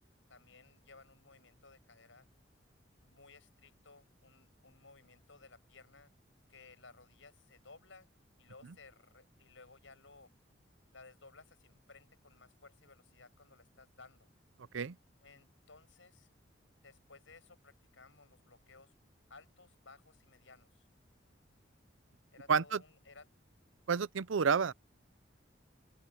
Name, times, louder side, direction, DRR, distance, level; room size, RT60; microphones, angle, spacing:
voice 1, 0.3-2.3 3.0-6.1 6.5-8.1 8.4-10.3 10.9-14.3 15.2-16.3 16.8-18.9 19.3-20.9 22.3-23.3, left 3 dB, 85° left, 7.0 m, -59 dB
voice 2, 22.5-22.8 23.9-24.7, right 6 dB, 90° right, 0.6 m, -29 dB
open air
head